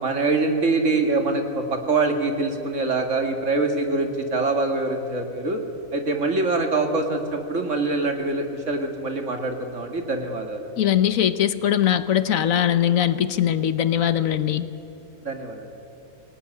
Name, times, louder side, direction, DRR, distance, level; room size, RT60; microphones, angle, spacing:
voice 1, 0.0-5.6 5.9-10.7 15.2-15.7, right 3 dB, 55° right, 4 dB, 2.5 m, -24 dB
voice 2, 10.8-14.7, left 10 dB, 70° left, 13 dB, 1.2 m, -21 dB
24.5 x 18.5 x 9.8 m, 2.8 s
omnidirectional pair, 1.5 m